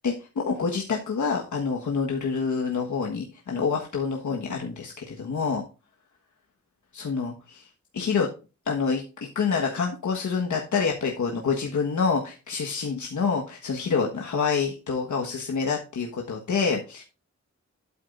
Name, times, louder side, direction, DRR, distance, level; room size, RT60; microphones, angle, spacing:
voice 1, 0.0-5.6 6.9-7.7 7.9-8.3 8.6-9.0 9.3-17.0, left 5 dB, 85° left, 0 dB, 1.4 m, -27 dB
12.0 x 8.5 x 2.5 m, 0.32 s
wide cardioid pair, 170°, 29 cm